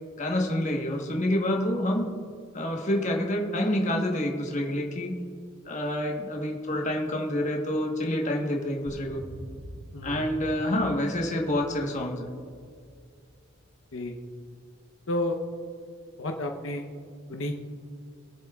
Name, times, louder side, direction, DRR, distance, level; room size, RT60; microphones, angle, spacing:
voice 1, 0.2-2.1 2.5-5.2 5.7-9.2 10.0-12.3, left 1 dB, 35° left, 1 dB, 1.3 m, -27 dB
sound 1, 8.9-14.2, equal, 50° right, 2.6 m, -46 dB
voice 2, 9.9-10.2 13.9-14.1 15.1-15.4 16.2-16.8 17.3-17.6, left 1 dB, 75° left, 3 dB, 1.0 m, -31 dB
24.0 x 8.3 x 2.4 m, 2.2 s
head